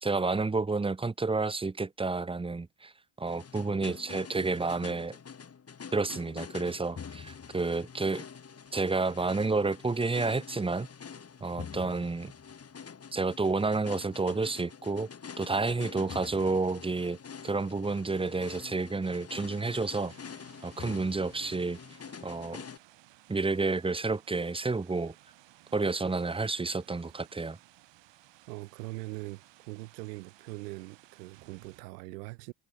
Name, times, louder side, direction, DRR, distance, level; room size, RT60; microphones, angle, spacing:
voice 1, 0.0-2.9 3.2-5.2 5.9-8.3 8.7-10.9 11.4-12.3 13.1-15.1 15.4-17.2 17.4-20.1 20.6-21.8 22.2-22.6 23.3-25.1 25.7-27.6, right 3 dB, 10° right, 0.8 m, -30 dB
sound 1, 3.3-22.8, left 6 dB, 30° left, 2.0 m, -46 dB
sound 2, 19.8-31.8, right 16 dB, 65° right, 2.9 m, -59 dB
voice 2, 28.5-32.5, right 23 dB, 85° right, 1.3 m, -42 dB
hypercardioid pair, 60°, 48 cm